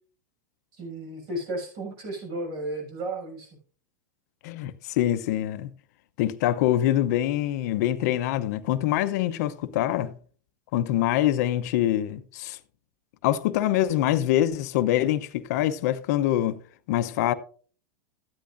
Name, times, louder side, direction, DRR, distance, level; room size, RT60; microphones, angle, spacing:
voice 1, 0.7-3.6, right 1 dB, 50° right, 6.6 m, -34 dB
voice 2, 4.4-5.7 6.2-10.2 10.7-12.6 13.2-16.6 16.9-17.3, left 13 dB, 65° left, 0.8 m, -24 dB
13.5 x 10.5 x 2.6 m
hypercardioid pair, 105°, 10 cm